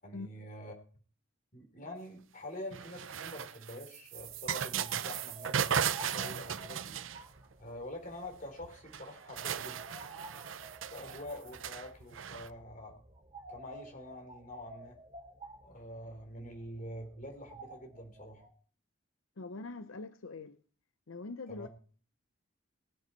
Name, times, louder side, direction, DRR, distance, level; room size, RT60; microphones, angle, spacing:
voice 1, 0.0-0.7 1.5-6.9 7.6-9.8 10.9-13.0 13.5-15.0 15.6-18.4 21.5-21.7, left 1 dB, 40° left, 4.0 m, -46 dB
sound 1, 2.7-7.5 8.6-8.7 8.9-12.5, right 8 dB, 75° right, 0.6 m, -36 dB
sound 2, 4.2-18.5, right 2 dB, 30° right, 2.3 m, -53 dB
voice 2, 19.4-20.6 21.1-21.7, left 3 dB, 85° left, 0.7 m, -43 dB
21.0 x 8.1 x 4.6 m
head